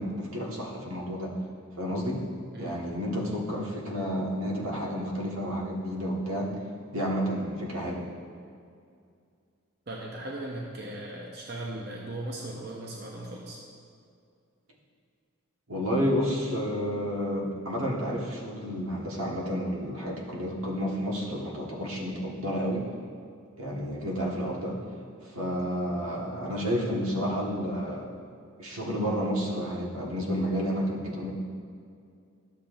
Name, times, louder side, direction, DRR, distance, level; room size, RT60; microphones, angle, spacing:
voice 1, 0.0-1.3 1.7-2.2 2.6-6.5 6.9-8.0 15.7-22.8 23.6-24.8 25.2-28.1 28.6-31.3, equal, 90° right, -3 dB, 1.5 m, -30 dB
voice 2, 9.9-13.6, right 1 dB, 50° right, -2 dB, 0.7 m, -38 dB
12.0 x 7.0 x 2.6 m, 2.3 s
head